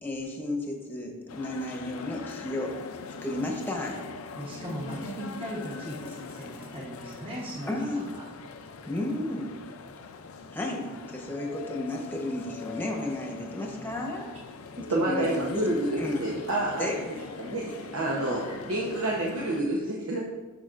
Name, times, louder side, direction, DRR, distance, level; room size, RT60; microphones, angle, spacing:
voice 1, 0.0-2.8 3.2-4.0 7.7-8.1 8.9-9.6 10.5-14.3 14.8-15.7 16.0-16.2 16.8-17.0, left 1 dB, 10° left, 0 dB, 0.9 m, -33 dB
sound 1, 1.3-19.6, left 5 dB, 85° left, 0.5 m, -42 dB
voice 2, 4.3-8.3 16.8-17.0 18.1-18.2, equal, 25° right, -6 dB, 1.1 m, -38 dB
voice 3, 14.9-16.8 17.4-17.6 17.9-18.4 18.7-20.2, right 1 dB, 85° right, -4 dB, 0.9 m, -28 dB
9.9 x 6.0 x 2.5 m, 1.3 s
head